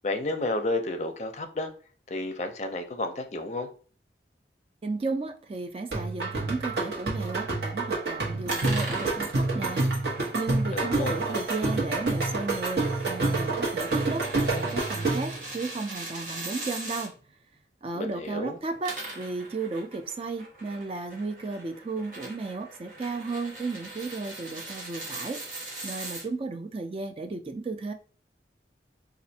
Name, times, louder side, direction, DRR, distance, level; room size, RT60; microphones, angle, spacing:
voice 1, 0.0-1.7 2.1-3.7 10.7-11.2 17.9-18.6, left 2 dB, 40° left, 0.5 m, -31 dB
voice 2, 4.8-17.1 17.8-25.4 25.8-27.9, right 3 dB, 30° right, 0.3 m, -34 dB
sound 1, 5.9-15.4, right 3 dB, 75° right, 1.0 m, -28 dB
sound 2, 8.5-17.1 18.6-26.2, right 2 dB, 50° right, 1.4 m, -41 dB
4.2 x 2.4 x 2.7 m
head